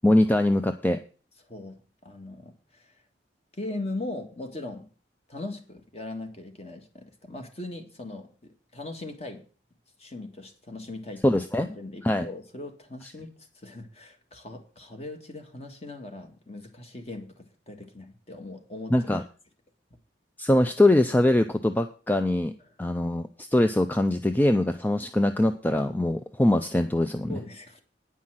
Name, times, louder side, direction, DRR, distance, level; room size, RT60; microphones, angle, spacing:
voice 1, 0.0-1.0 11.2-11.7 12.0-12.3 18.9-19.2 20.4-22.5 22.8-27.4, left 1 dB, 10° left, 8 dB, 0.4 m, -22 dB
voice 2, 1.5-3.0 3.5-4.9 5.3-9.4 10.0-11.2 11.6-19.0 27.3-27.8, left 2 dB, 35° left, 5 dB, 1.7 m, -39 dB
9.6 x 5.7 x 7.5 m, 0.38 s
head